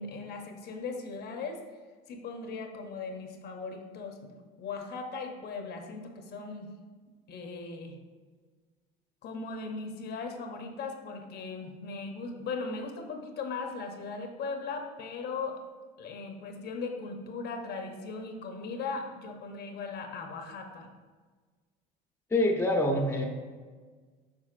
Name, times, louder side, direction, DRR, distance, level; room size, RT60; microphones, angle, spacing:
voice 1, 0.0-1.6 2.1-4.3 4.6-6.7 7.3-8.0 9.2-15.6 16.0-20.9, left 4 dB, 55° left, 4 dB, 0.9 m, -38 dB
voice 2, 22.3-23.3, left 1 dB, 10° left, 3 dB, 0.8 m, -25 dB
7.5 x 5.6 x 2.5 m, 1.5 s
supercardioid pair, 105°, 20 cm